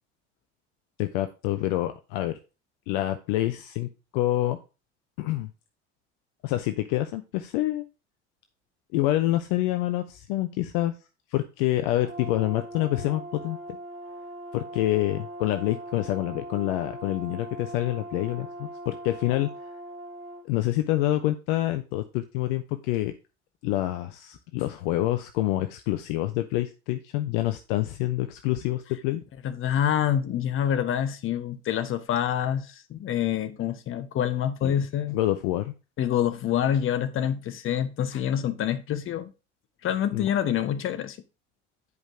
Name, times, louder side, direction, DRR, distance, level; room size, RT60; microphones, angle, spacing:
voice 1, 1.0-2.4 2.9-4.6 5.2-5.5 6.4-7.8 8.9-10.9 11.3-13.6 14.5-19.5 20.4-23.1 23.6-29.2 34.6-34.7 35.1-35.7 40.1-40.3, left 15 dB, 55° left, 0.7 m, -27 dB
Brass instrument, 12.0-20.4, right 1 dB, 35° right, 1.7 m, -40 dB
voice 2, 29.4-35.2 36.0-39.3 39.8-41.2, left 9 dB, 35° left, 1.0 m, -26 dB
9.4 x 5.1 x 3.6 m
figure-of-eight pair, 65°, 36 cm